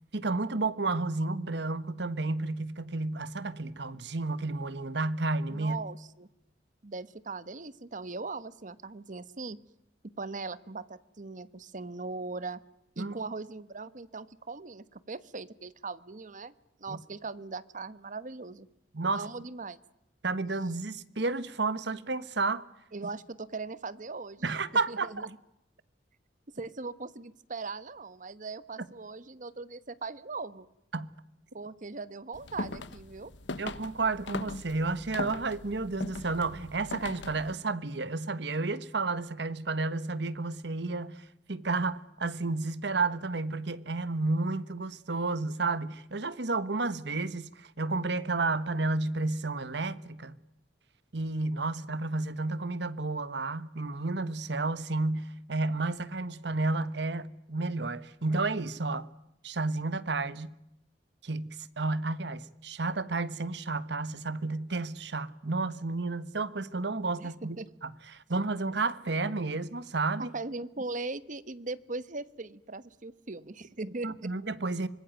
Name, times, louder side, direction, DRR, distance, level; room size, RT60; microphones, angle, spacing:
voice 1, 0.1-5.8 13.0-13.1 16.9-17.0 18.9-19.3 20.2-22.6 24.4-25.3 30.9-31.1 33.6-50.3 51.1-59.1 59.4-60.5 61.2-67.6 67.8-70.3 74.0-74.9, right 3 dB, 70° right, 1.3 m, -31 dB
voice 2, 5.5-6.3 6.8-9.6 10.2-12.6 13.0-16.5 16.8-18.7 19.1-19.8 22.9-24.5 24.9-25.3 26.5-30.7 31.5-33.3 67.2-67.7 70.2-74.3, right 3 dB, 45° right, 1.2 m, -39 dB
sound 1, 32.3-37.5, left 2 dB, 80° left, 1.2 m, -40 dB
25.0 x 21.0 x 9.3 m
head